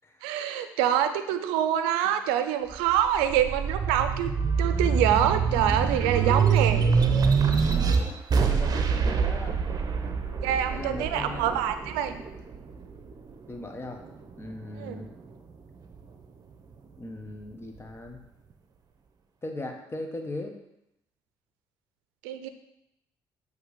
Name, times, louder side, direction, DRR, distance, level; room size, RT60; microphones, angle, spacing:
voice 1, 0.2-4.3 4.6-6.9 10.4-12.2 14.8-15.0 22.2-22.5, right 10 dB, 90° right, 10 dB, 0.5 m, -25 dB
sound 1, 2.7-13.5 14.0-15.2, right 5 dB, 45° right, 0.8 m, -25 dB
voice 2, 8.3-9.6 10.7-11.6 12.8-12.9 13.5-14.0 14.4-15.1 17.0-18.2 19.4-20.5, left 2 dB, 25° left, 4 dB, 1.3 m, -38 dB
7.8 x 3.3 x 5.1 m, 0.80 s
supercardioid pair, 60°, 9 cm